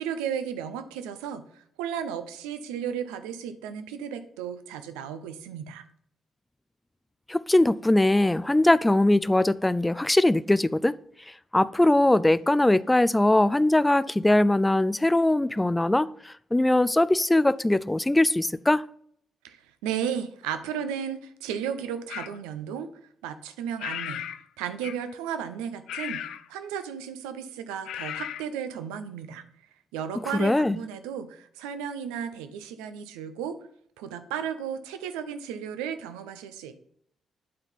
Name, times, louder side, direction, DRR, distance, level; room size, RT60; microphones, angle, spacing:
voice 1, 0.0-5.8 19.4-22.9 23.2-24.2 24.6-29.4 29.9-33.6 34.0-36.7, right 8 dB, 85° right, 0.6 m, -34 dB
voice 2, 7.3-11.0 11.5-18.9 30.4-30.8, left 1 dB, 15° left, 0.4 m, -21 dB
sound 1, 22.1-22.4 23.8-24.4 24.8-25.1 25.9-26.5 27.9-28.4, left 10 dB, 75° left, 0.4 m, -35 dB
8.7 x 4.0 x 5.2 m
hypercardioid pair, 50°, 0 cm